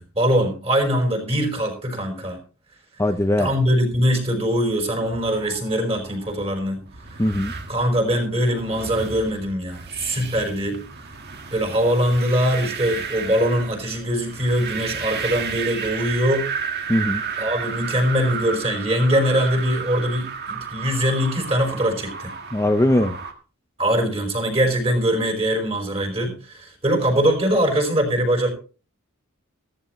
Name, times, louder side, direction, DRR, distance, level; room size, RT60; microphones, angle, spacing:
voice 1, 0.0-2.4 3.4-6.8 7.7-10.8 11.5-16.5 17.4-22.3 23.8-28.5, equal, 30° right, 3 dB, 4.9 m, -22 dB
voice 2, 3.0-3.5 7.2-7.5 16.9-17.2 22.5-23.2, left 1 dB, 15° left, 6 dB, 0.7 m, -20 dB
sound 1, 4.8-23.3, right 6 dB, 50° right, 1.8 m, -33 dB
14.5 x 14.0 x 3.2 m, 0.35 s
head